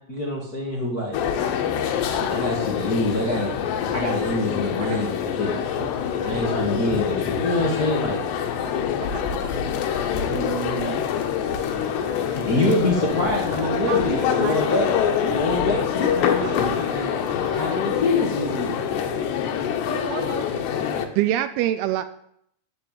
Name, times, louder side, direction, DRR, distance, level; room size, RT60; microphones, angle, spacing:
voice 1, 0.1-1.2 2.1-3.5 3.9-5.5 6.2-8.2 12.3-14.9 15.3-17.2 17.5-18.8, left 1 dB, 55° left, -2 dB, 1.0 m, -25 dB
sound 1, 1.1-21.1, left 8 dB, 80° left, 3.3 m, -25 dB
voice 2, 4.8-5.7 8.6-9.5 11.2-11.7 12.0-12.4 13.6-14.9 15.2-15.4 16.4-16.7 17.4-18.1 19.8-21.2, right 6 dB, 60° right, 5 dB, 2.8 m, -37 dB
voice 3, 10.3-11.1 21.2-22.0, right 13 dB, 80° right, 12 dB, 2.4 m, -26 dB
Wind, 11.2-20.0, right 3 dB, 45° right, 1.7 m, -41 dB
12.5 x 6.9 x 9.0 m, 0.71 s
omnidirectional pair, 4.9 m